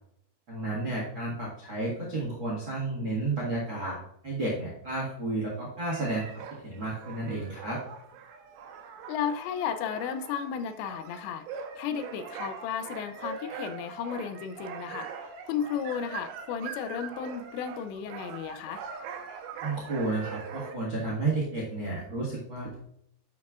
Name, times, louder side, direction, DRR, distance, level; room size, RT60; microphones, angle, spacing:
voice 1, 0.5-3.9 4.2-7.8 19.6-22.8, right 2 dB, 50° right, -4 dB, 1.5 m, -32 dB
sound 1, 5.9-20.8, right 6 dB, 75° right, 3.1 m, -42 dB
voice 2, 9.1-11.5 11.7-15.1 15.5-18.8, left 8 dB, 85° left, 9 dB, 2.8 m, -34 dB
12.0 x 6.0 x 2.5 m, 0.71 s
omnidirectional pair, 5.2 m